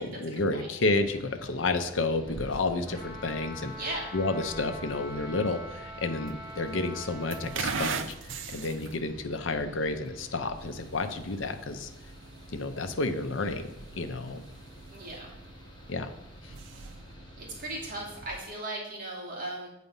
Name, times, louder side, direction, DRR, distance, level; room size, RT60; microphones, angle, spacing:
voice 1, 0.0-3.7 4.1-8.1 8.5-11.9 12.5-13.7 13.9-14.4 15.9-16.1 16.4-16.5, left 3 dB, 85° left, 8 dB, 0.7 m, -30 dB
Mechanical fan, 0.8-18.2, equal, 25° left, 1.1 m, -50 dB
sound 1, 2.3-18.5, right 5 dB, 90° right, 0.6 m, -43 dB
Trumpet, 2.8-7.9, left 1 dB, 15° right, 2.1 m, -43 dB
voice 2, 3.8-4.1 14.9-15.3 17.4-19.7, right 2 dB, 45° right, -3 dB, 2.3 m, -37 dB
8.2 x 4.2 x 5.5 m, 0.86 s
head